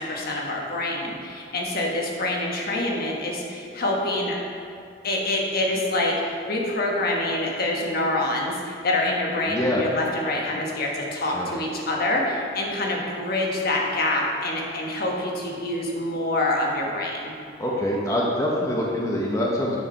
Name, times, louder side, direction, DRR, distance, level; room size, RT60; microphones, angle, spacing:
voice 1, 0.0-4.4 5.0-17.3, left 1 dB, 55° left, -1 dB, 1.2 m, -26 dB
voice 2, 9.5-9.9 11.3-11.5 17.6-19.8, left 1 dB, 15° left, -3 dB, 0.8 m, -24 dB
8.6 x 4.8 x 5.3 m, 2.6 s
head